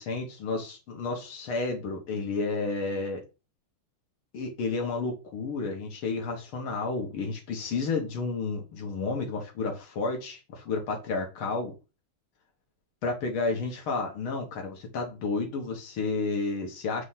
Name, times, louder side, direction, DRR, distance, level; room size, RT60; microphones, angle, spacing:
voice 1, 0.0-3.2 4.3-11.7 13.0-17.0, left 3 dB, 85° left, 2.2 m, -31 dB
7.1 x 3.4 x 5.6 m
omnidirectional pair, 2.2 m